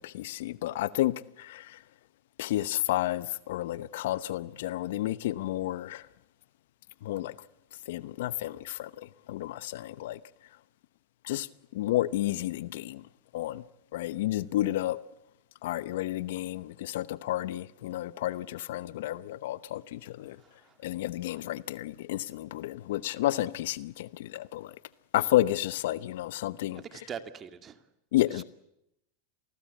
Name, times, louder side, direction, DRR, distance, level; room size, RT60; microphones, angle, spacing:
voice 1, 0.0-1.8 2.4-6.1 7.0-7.4 7.9-10.2 11.2-13.1 13.3-13.6 13.9-15.0 15.6-20.4 20.8-24.8 25.1-26.8 28.1-28.4, left 15 dB, 70° left, 0.9 m, -31 dB
voice 2, 20.3-20.8 26.7-27.8 28.3-28.4, right 8 dB, 30° right, 2.3 m, -43 dB
28.0 x 19.0 x 8.5 m
hypercardioid pair, 110°, 0 cm